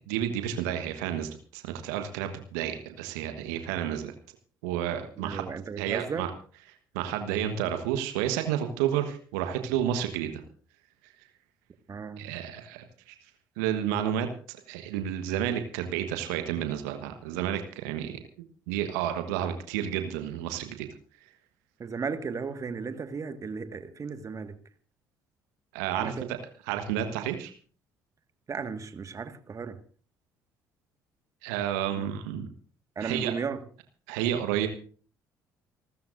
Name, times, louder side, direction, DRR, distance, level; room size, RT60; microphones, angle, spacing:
voice 1, 0.1-4.1 4.6-5.4 5.8-6.3 6.9-10.4 12.2-13.1 13.6-20.9 25.7-26.4 26.7-27.5 31.4-32.5 33.0-33.3 34.1-34.7, right 10 dB, 70° right, 7 dB, 1.3 m, -31 dB
voice 2, 5.2-6.2 11.9-12.3 21.8-24.5 26.0-26.3 28.5-29.8 31.9-32.1 32.9-33.6, right 5 dB, 35° right, 9 dB, 1.7 m, -35 dB
29.0 x 13.5 x 2.6 m, 0.42 s
figure-of-eight pair, 50°, 9 cm